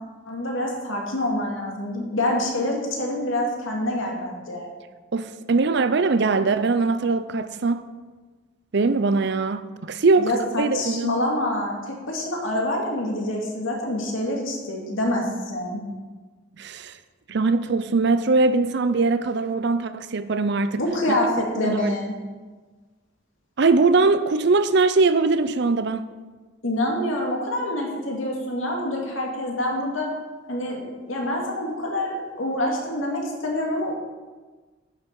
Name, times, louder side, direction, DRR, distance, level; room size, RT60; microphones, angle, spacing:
voice 1, 0.3-4.7 10.2-15.8 20.8-22.1 26.6-30.1 30.5-33.9, left 1 dB, 90° left, 2.4 m, -26 dB
voice 2, 5.1-7.9 8.7-10.3 10.6-11.2 16.6-17.0 17.3-20.8 21.1-21.2 21.6-21.9 23.6-26.1, right 3 dB, 60° right, 0.6 m, -21 dB
10.5 x 7.2 x 5.3 m
head